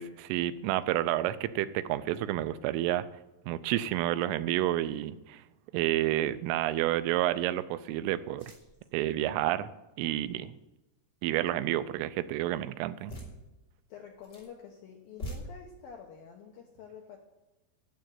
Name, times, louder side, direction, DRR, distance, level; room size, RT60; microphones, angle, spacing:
voice 1, 0.0-3.1 3.5-5.4 5.7-8.5 8.9-9.7 10.0-10.6 11.2-13.1, right 14 dB, 85° right, 13 dB, 3.1 m, -30 dB
sound 1, 5.8-6.2 6.7-6.8 8.3-8.9 13.0-13.3 14.0-14.5 15.0-15.4, right 1 dB, 25° left, 4.0 m, -44 dB
voice 2, 13.9-17.2, left 7 dB, 75° left, 1 dB, 2.2 m, -48 dB
11.5 x 7.6 x 9.1 m, 0.99 s
omnidirectional pair, 5.7 m